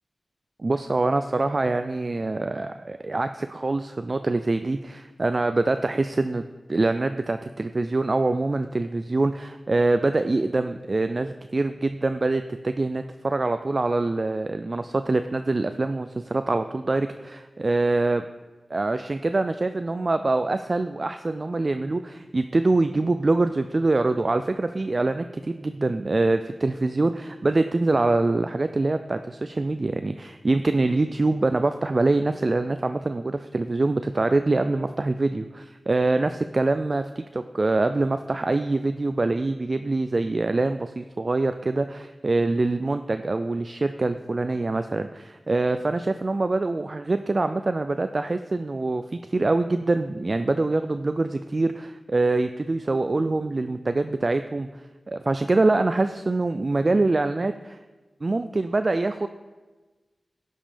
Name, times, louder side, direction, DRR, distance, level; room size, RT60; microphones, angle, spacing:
voice 1, 0.6-6.4 6.7-18.3 18.7-57.8 58.2-59.3, right 2 dB, 45° right, 9 dB, 0.4 m, -24 dB
11.0 x 5.4 x 5.1 m, 1.2 s
wide cardioid pair, 75°, 0 cm